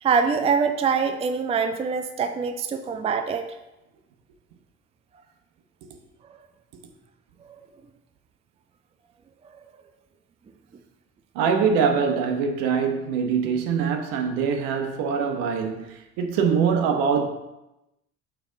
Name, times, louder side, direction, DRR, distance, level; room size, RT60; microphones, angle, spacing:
voice 1, 0.0-3.5 7.4-7.5, right 5 dB, 15° right, 0.4 m, -24 dB
voice 2, 11.3-17.3, right 6 dB, 65° right, 1.1 m, -23 dB
6.7 x 4.6 x 3.9 m
hypercardioid pair, 65°, 37 cm